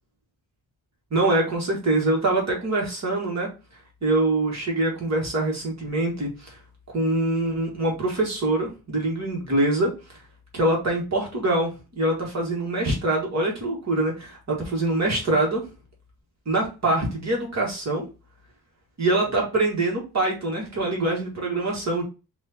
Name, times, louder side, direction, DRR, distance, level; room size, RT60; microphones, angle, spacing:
voice 1, 1.1-3.5 4.0-6.6 6.9-9.9 10.5-15.6 16.4-18.0 19.0-22.0, right 2 dB, 45° right, -1 dB, 1.6 m, -24 dB
4.9 x 2.6 x 4.1 m, 0.29 s
wide cardioid pair, 175°, 39 cm